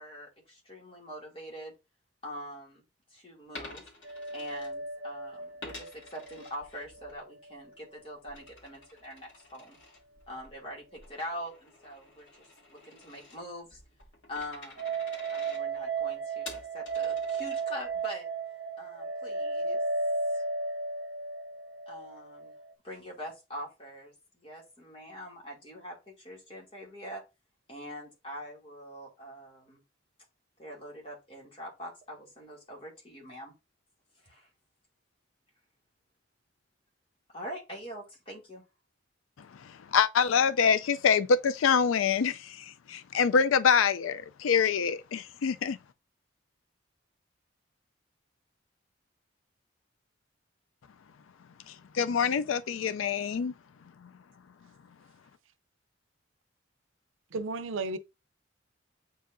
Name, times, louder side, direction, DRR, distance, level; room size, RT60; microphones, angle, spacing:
voice 1, 0.0-1.7 2.2-2.8 3.1-9.8 10.3-13.8 14.3-15.0 15.3-18.3 18.8-19.8 20.3-20.4 21.9-22.5 22.8-24.1 24.4-27.2 27.7-29.8 30.6-33.5 34.2-34.5 37.3-38.6, equal, 30° left, 2.3 m, -43 dB
Coin (dropping), 3.4-5.1 5.6-7.2 7.6-18.0, left 2 dB, 70° left, 2.3 m, -50 dB
sound 1, 4.0-7.2 7.5-7.6 14.8-22.7, right 4 dB, 60° right, 1.3 m, -34 dB
voice 2, 39.9-45.8 51.7-53.5, left 6 dB, 85° left, 0.4 m, -25 dB
voice 3, 57.3-58.0, right 3 dB, 85° right, 0.6 m, -33 dB
8.1 x 4.7 x 2.6 m
head